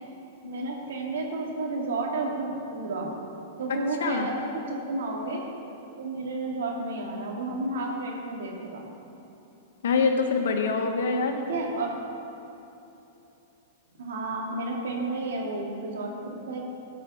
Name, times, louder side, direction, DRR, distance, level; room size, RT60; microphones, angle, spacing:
voice 1, 0.5-3.1 3.6-5.4 6.0-8.8 11.4-11.9 14.0-16.6, right 2 dB, 80° right, -1 dB, 2.5 m, -31 dB
voice 2, 9.8-11.4, left 4 dB, 80° left, 4 dB, 1.4 m, -25 dB
15.5 x 5.6 x 7.0 m, 2.9 s
hypercardioid pair, 130°, 0 cm